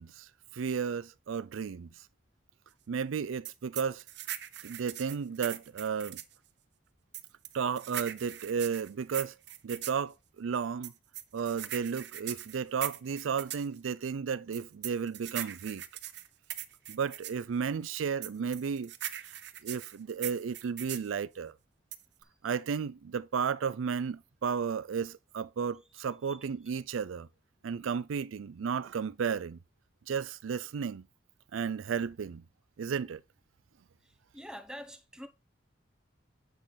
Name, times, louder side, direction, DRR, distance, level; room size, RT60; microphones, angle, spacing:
voice 1, 0.0-2.1 2.9-4.0 4.6-6.2 7.5-9.4 9.6-10.9 11.3-15.8 16.9-18.9 19.2-21.6 22.4-27.3 27.6-29.6 30.1-31.0 31.5-32.4 32.8-33.2, right 6 dB, 85° right, 0.4 m, -33 dB
sound 1, 3.5-6.4 7.1-10.0 10.8-13.7 14.5-17.4 18.2-21.1 21.9-22.2, right 12 dB, 55° right, 0.8 m, -40 dB
voice 2, 34.3-35.3, equal, 5° right, 0.9 m, -44 dB
8.1 x 6.1 x 4.0 m
head